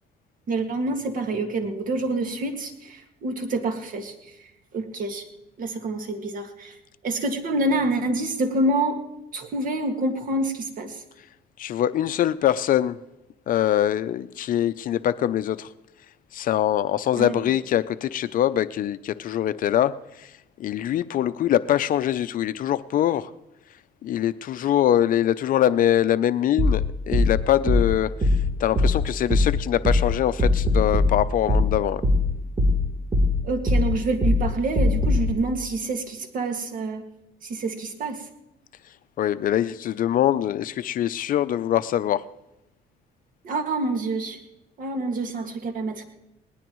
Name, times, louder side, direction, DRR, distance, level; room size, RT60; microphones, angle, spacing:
voice 1, 0.5-4.4 4.7-5.3 5.6-6.8 7.0-9.0 9.3-11.0 17.2-17.4 33.4-37.0 37.4-38.3 43.4-44.4 44.8-46.0, right 2 dB, 55° right, 5 dB, 2.0 m, -27 dB
voice 2, 11.6-13.0 13.5-15.7 16.3-20.3 20.6-23.3 24.0-28.3 28.6-32.0 39.2-42.2, left 11 dB, 55° left, 14 dB, 0.5 m, -23 dB
sound 1, 26.6-35.3, left 2 dB, 30° right, 3.4 m, -22 dB
19.5 x 19.0 x 3.1 m, 0.92 s
cardioid pair, 110°, 17 cm